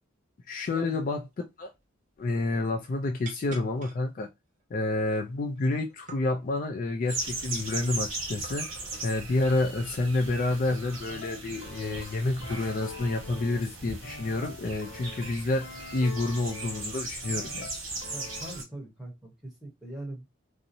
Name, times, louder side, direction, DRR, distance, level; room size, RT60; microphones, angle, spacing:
voice 1, 0.5-1.2 1.6-1.7 2.2-4.3 4.7-8.7 9.0-15.7 15.9-17.7, left 2 dB, 40° left, 0.3 m, -29 dB
sound 1, 1.3-1.4 1.7-1.9 2.1-2.7 3.2-4.0 4.6-4.7 5.0-5.6 5.9-6.2 6.8-7.6 8.4-9.1 10.7-11.2 12.1-12.2 12.6-13.1 13.4-13.6 14.6-14.9, right 3 dB, 35° right, 0.5 m, -49 dB
sound 2, 7.1-18.6, right 2 dB, 85° right, 1.1 m, -38 dB
sound 3, 11.1-13.8 14.0-17.0 17.2-18.6, left 3 dB, 80° left, 0.8 m, -45 dB
voice 2, 18.1-20.2, right 1 dB, 5° right, 1.0 m, -42 dB
2.7 x 2.0 x 2.5 m
head